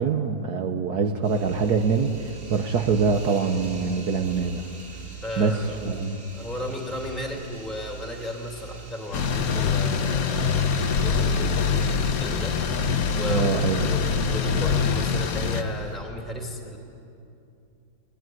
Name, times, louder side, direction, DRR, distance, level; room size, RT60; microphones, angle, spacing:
voice 1, 0.0-4.6 5.4-6.2 13.3-13.9, right 5 dB, 60° right, 5 dB, 1.4 m, -24 dB
sound 1, 1.2-16.0, right 5 dB, 80° right, 6.8 m, -43 dB
voice 2, 5.2-5.9 6.3-12.6 13.1-16.8, left 1 dB, ahead, 1 dB, 2.6 m, -34 dB
sound 2, 9.1-15.6, left 6 dB, 55° left, 1.3 m, -24 dB
22.0 x 19.5 x 9.4 m, 2.7 s
omnidirectional pair, 2.1 m